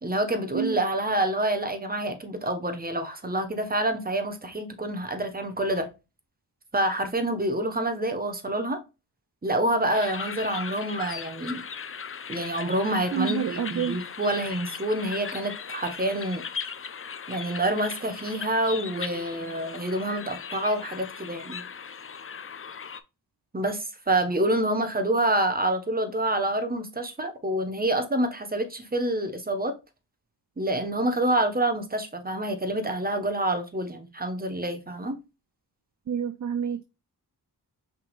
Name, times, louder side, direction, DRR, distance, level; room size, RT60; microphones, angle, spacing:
voice 1, 0.0-5.9 6.7-8.8 9.4-11.6 12.3-16.4 17.3-21.6 23.5-29.7 30.6-35.2, right 1 dB, 20° right, 1.1 m, -27 dB
sound 1, 9.9-23.0, left 6 dB, 30° left, 0.5 m, -38 dB
voice 2, 13.1-14.0 36.1-36.8, right 8 dB, 45° right, 0.5 m, -28 dB
5.6 x 3.6 x 2.4 m
wide cardioid pair, 70°, 42 cm